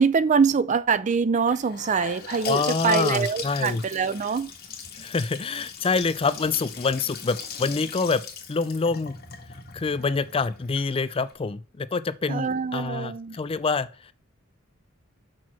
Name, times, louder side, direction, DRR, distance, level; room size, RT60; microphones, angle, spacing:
voice 1, 0.0-4.5 12.3-13.4, right 5 dB, 35° right, 0.4 m, -24 dB
Gurgling / Sink (filling or washing) / Bathtub (filling or washing), 1.5-11.3, left 6 dB, 50° left, 1.6 m, -39 dB
voice 2, 2.4-3.8 4.9-8.2 8.5-9.2 9.7-14.1, left 4 dB, 25° left, 0.4 m, -26 dB
6.2 x 4.6 x 5.9 m
head